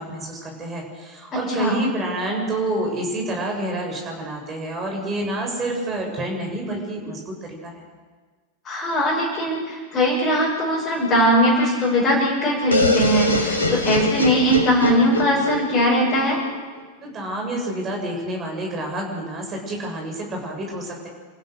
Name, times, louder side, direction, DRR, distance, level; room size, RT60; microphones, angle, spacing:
voice 1, 0.0-7.9 17.0-21.1, right 1 dB, 25° right, 1 dB, 7.1 m, -28 dB
voice 2, 1.3-1.8 8.7-16.4, equal, 20° left, -6 dB, 6.9 m, -20 dB
sound 1, 12.7-16.5, left 3 dB, 75° left, 3.4 m, -23 dB
28.5 x 15.5 x 6.7 m, 1.4 s
figure-of-eight pair, 90°, 0 cm